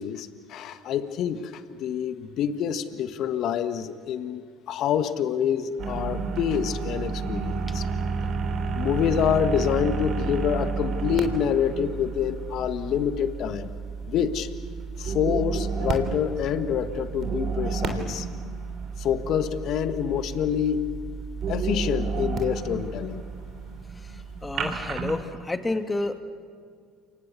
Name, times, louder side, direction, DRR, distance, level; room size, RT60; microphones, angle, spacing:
voice 1, 0.0-4.4 4.7-7.8 8.7-13.7 14.1-14.5 15.0-18.3 19.0-20.9 21.5-23.2, left 8 dB, 60° left, 11 dB, 1.6 m, -27 dB
sound 1, 5.8-25.2, right 5 dB, 50° right, 3.4 m, -31 dB
voice 2, 24.0-26.2, left 2 dB, 20° left, 8 dB, 2.3 m, -30 dB
29.0 x 25.0 x 6.9 m, 2.1 s
hypercardioid pair, 70°, 0 cm